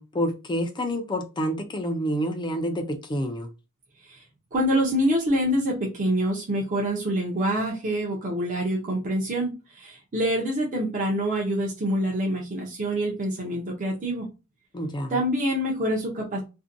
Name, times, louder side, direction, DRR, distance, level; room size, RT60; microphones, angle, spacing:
voice 1, 0.0-3.5 14.7-15.2, equal, 20° left, 0.4 m, -28 dB
voice 2, 4.5-14.3 15.1-16.4, equal, 35° right, 0.6 m, -26 dB
2.6 x 2.1 x 2.5 m
head